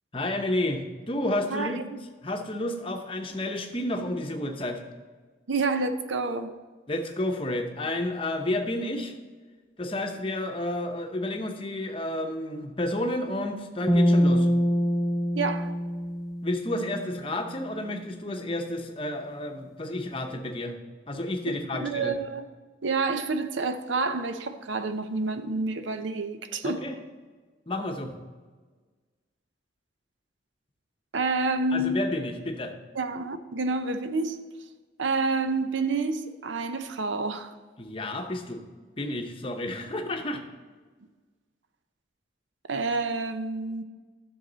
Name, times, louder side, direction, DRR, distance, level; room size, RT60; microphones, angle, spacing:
voice 1, 0.1-1.8 2.2-4.8 6.9-9.1 9.8-14.5 16.4-20.8 21.1-22.2 26.6-27.0 27.7-28.2 31.7-32.7 37.8-38.6 39.0-40.4, left 1 dB, 30° left, 0.8 m, -31 dB
voice 2, 5.5-6.5 15.4-15.7 21.7-22.5 22.8-26.8 31.1-32.0 33.0-34.4 35.0-37.5 42.7-43.8, right 3 dB, 80° right, 0.7 m, -28 dB
sound 1, 13.9-17.2, equal, ahead, 0.6 m, -24 dB
11.0 x 6.4 x 4.0 m
head